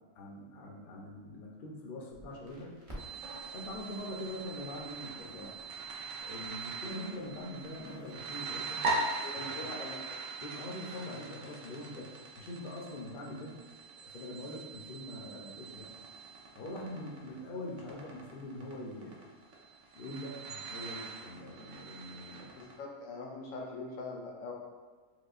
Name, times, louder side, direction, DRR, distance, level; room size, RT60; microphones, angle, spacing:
voice 1, 0.2-2.7 3.5-5.5 6.2-8.8 9.4-9.7 10.4-13.6 13.9-15.9 16.5-19.1 19.9-22.5, left 1 dB, 55° left, -1 dB, 0.6 m, -43 dB
Crackle, 2.1-8.6, equal, 30° right, 0.6 m, -55 dB
sound 1, 3.0-22.7, right 3 dB, 65° right, 0.9 m, -41 dB
voice 2, 9.2-9.9 22.6-24.5, left 3 dB, 80° left, -1 dB, 1.0 m, -42 dB
4.8 x 2.1 x 2.4 m, 1.4 s
omnidirectional pair, 1.4 m